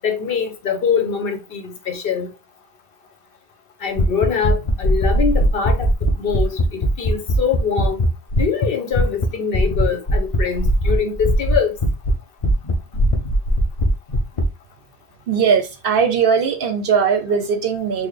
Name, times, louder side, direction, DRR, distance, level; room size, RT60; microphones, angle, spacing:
voice 1, 0.0-2.3 3.8-8.0 8.4-11.8, left 6 dB, 60° left, 0.9 m, -23 dB
sound 1, 4.0-8.7 8.9-9.3 9.5-12.1 12.4-14.5, equal, 40° left, 0.6 m, -18 dB
voice 2, 15.3-18.1, right 6 dB, 65° right, 0.7 m, -19 dB
4.1 x 2.1 x 3.2 m
omnidirectional pair, 1.1 m